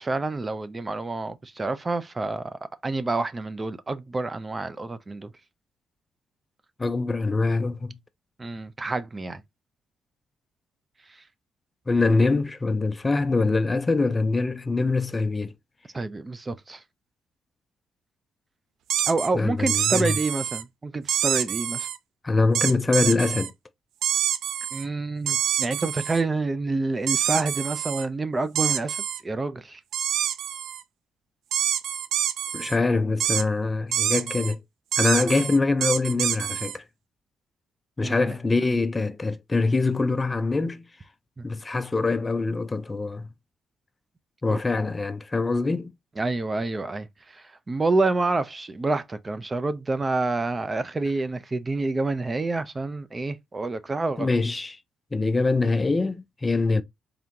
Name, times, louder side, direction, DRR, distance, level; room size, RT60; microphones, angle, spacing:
voice 1, 0.0-5.3 8.4-9.4 15.9-16.8 19.1-21.9 24.7-29.8 38.0-38.4 41.4-41.5 44.5-44.6 46.2-47.1 47.3-54.3, right 3 dB, 25° right, 0.5 m, -28 dB
voice 2, 6.8-7.9 11.9-15.5 19.3-20.2 22.2-23.5 32.5-34.6 35.0-36.8 38.0-40.9 41.4-43.3 44.4-45.9 54.2-54.8 55.1-56.8, left 3 dB, 20° left, 0.5 m, -24 dB
sound 1, 18.9-19.3 19.7-20.6 21.1-22.0 22.5-23.5 24.0-24.9 25.3-26.2 27.1-28.1 28.6-29.2 29.9-30.8 31.5-32.8 33.2-33.4 33.9-34.5 34.9-36.8, right 10 dB, 80° right, 0.4 m, -26 dB
3.6 x 3.5 x 2.8 m
cardioid pair, 90°, 0 cm